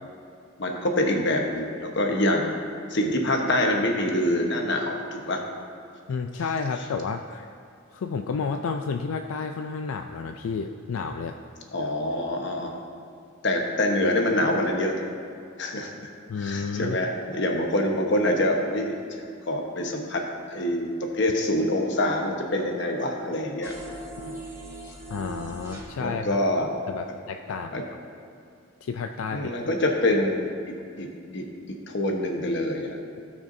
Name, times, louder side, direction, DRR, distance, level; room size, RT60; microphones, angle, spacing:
voice 1, 0.6-2.5 2.9-5.4 11.7-12.8 13.4-15.0 15.6-16.1 16.4-20.2 20.5-23.7 24.2-24.4 26.0-26.7 27.1-27.2 27.7-27.8 29.3-30.5 31.0-31.1 31.3-33.0, left 1 dB, 60° left, 2 dB, 1.1 m, -25 dB
voice 2, 6.1-7.4 7.9-11.4 16.3-17.0 25.1-27.8 28.8-29.7, left 5 dB, 85° left, 6 dB, 0.4 m, -31 dB
sound 1, 23.6-25.8, right 2 dB, 15° right, 1.9 m, -39 dB
17.5 x 5.9 x 2.7 m, 2.5 s
head